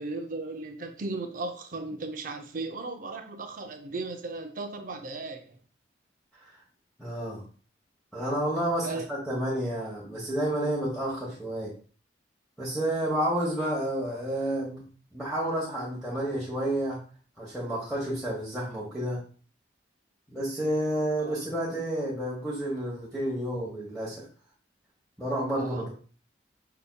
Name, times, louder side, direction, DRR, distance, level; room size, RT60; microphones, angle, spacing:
voice 1, 0.0-5.6 8.8-9.1 21.2-21.4 25.6-25.9, right 3 dB, 45° right, 6 dB, 0.6 m, -36 dB
voice 2, 7.0-7.4 8.1-11.7 12.6-14.8 15.1-17.0 17.4-19.2 20.3-24.3 25.2-25.9, right 1 dB, ahead, -7 dB, 1.1 m, -30 dB
5.6 x 3.5 x 2.2 m, 0.40 s
head